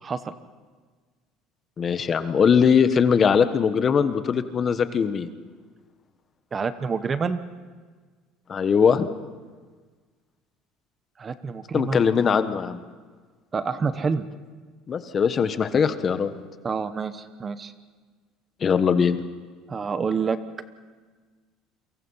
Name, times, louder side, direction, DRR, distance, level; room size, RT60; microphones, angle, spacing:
voice 1, 0.0-0.3 6.5-7.4 11.2-12.0 13.5-14.3 16.6-17.7 19.7-20.4, right 5 dB, 25° right, 12 dB, 1.0 m, -27 dB
voice 2, 1.8-5.3 8.5-9.1 11.7-12.8 14.9-16.3 18.6-19.2, left 6 dB, 30° left, 11 dB, 1.3 m, -21 dB
29.5 x 23.5 x 5.7 m, 1.4 s
cardioid pair, 130°, 0 cm